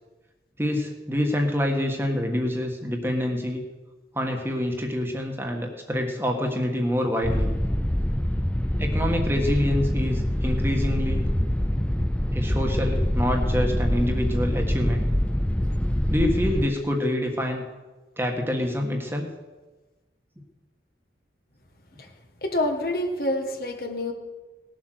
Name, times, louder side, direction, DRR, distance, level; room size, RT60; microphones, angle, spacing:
voice 1, 0.6-3.6 4.1-7.5 8.8-11.3 12.3-15.1 16.1-17.6 18.2-19.3, left 1 dB, 15° right, 2 dB, 1.5 m, -26 dB
sound 1, 7.2-16.7, equal, 5° left, 0.5 m, -25 dB
voice 2, 22.4-24.1, left 1 dB, 55° left, 4 dB, 1.6 m, -27 dB
19.0 x 7.8 x 6.4 m, 1.2 s
head